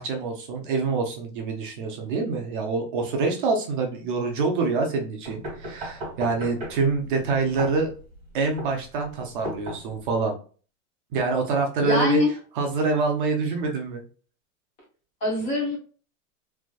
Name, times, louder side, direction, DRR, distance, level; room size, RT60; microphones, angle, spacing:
voice 1, 0.0-7.9 8.3-10.3 11.1-12.2 12.5-14.0, right 4 dB, 40° right, 2 dB, 0.6 m, -26 dB
sound 1, 5.2-10.2, right 1 dB, 20° right, 1.5 m, -37 dB
voice 2, 11.8-12.3 15.2-15.8, left 2 dB, 20° left, -2 dB, 0.6 m, -24 dB
3.3 x 2.6 x 2.2 m, 0.39 s
supercardioid pair, 180°, 40 cm